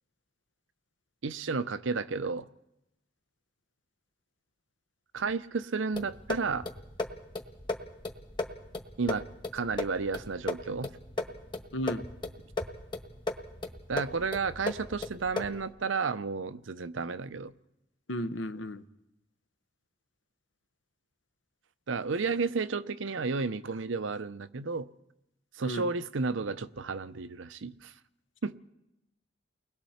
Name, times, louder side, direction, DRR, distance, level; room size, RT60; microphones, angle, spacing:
voice 1, 1.2-2.5 5.1-6.7 9.0-9.2 9.5-10.9 13.9-17.5 21.9-24.9 25.6-27.9 28.4-28.6, right 4 dB, 75° right, 14 dB, 0.7 m, -32 dB
sound 1, 5.9-15.7, left 2 dB, 25° left, 1.5 m, -37 dB
voice 2, 11.7-12.0 18.1-18.8 25.6-25.9, equal, 70° left, 12 dB, 1.0 m, -34 dB
30.0 x 20.5 x 4.3 m, 0.89 s
head